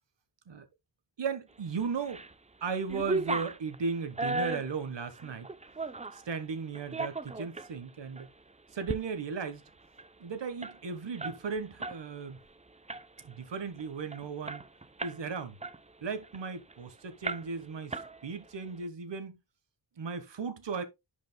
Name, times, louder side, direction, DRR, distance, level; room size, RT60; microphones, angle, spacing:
voice 1, 1.2-2.2 2.6-5.5 6.1-8.3 8.7-9.6 10.2-12.4 13.2-14.6 15.0-15.6 16.0-17.9 18.2-19.4 20.0-20.8, right 5 dB, 85° right, 1.3 m, -36 dB
sound 1, 1.8-2.3 2.7-6.2 6.7-7.7 8.2-8.3 8.7-9.0 9.3-9.4 9.7-12.0 12.3-12.5 12.9-13.3 13.8-13.9 14.1-15.2 15.6-16.8 17.2-17.6 17.9-18.5, right 3 dB, 15° right, 0.6 m, -36 dB
11.0 x 5.1 x 2.2 m
cardioid pair, 60°, 42 cm